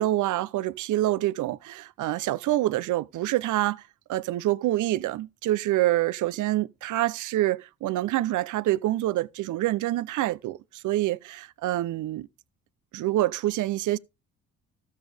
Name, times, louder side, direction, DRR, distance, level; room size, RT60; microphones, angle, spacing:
voice 1, 0.0-3.8 4.1-12.3 12.9-14.0, right 15 dB, 80° right, 0.7 m, -26 dB
13.0 x 8.3 x 3.4 m
cardioid pair, 90°, 30 cm